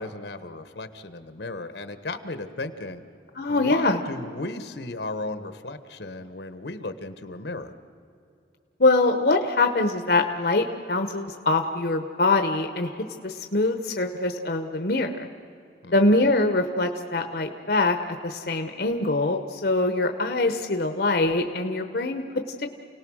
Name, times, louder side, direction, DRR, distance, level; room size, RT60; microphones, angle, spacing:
voice 1, 0.0-3.0 3.5-7.7 15.8-16.3, left 2 dB, 75° left, 10 dB, 1.3 m, -35 dB
voice 2, 3.4-4.0 8.8-15.3 15.9-22.7, left 2 dB, 60° left, 6 dB, 1.0 m, -24 dB
29.5 x 18.5 x 6.4 m, 2.6 s
head